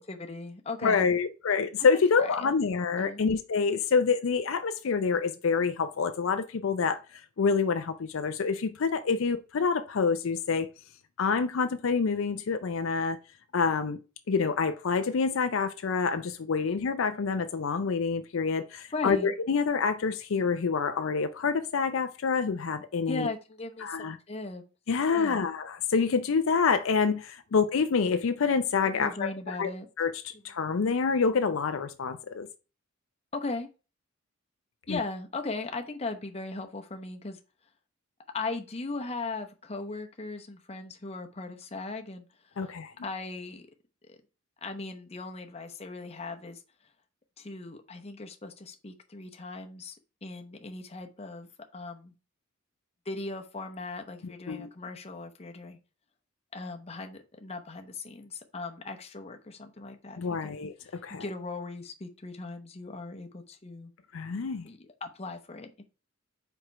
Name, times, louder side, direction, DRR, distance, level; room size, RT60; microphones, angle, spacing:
voice 1, 0.0-1.1 2.2-2.5 3.0-3.2 16.7-16.8 18.9-19.3 23.1-24.6 25.1-25.5 29.0-29.9 33.3-33.7 34.9-37.4 38.3-42.3 42.6-42.7 43.0-43.6 44.1-44.2 44.6-46.6 47.4-49.9 50.2-52.1 53.1-55.8 56.5-60.5 60.9-63.9 64.6-65.8, left 3 dB, 30° left, 0.8 m, -38 dB
voice 2, 0.8-10.7 11.2-13.2 13.5-14.0 14.3-23.3 23.8-24.2 24.9-29.7 30.0-32.5 34.9-35.0 42.6-42.9 54.5-54.7 60.2-60.7 61.0-61.3 64.1-64.7, left 5 dB, 65° left, 0.5 m, -27 dB
4.9 x 4.4 x 4.5 m
head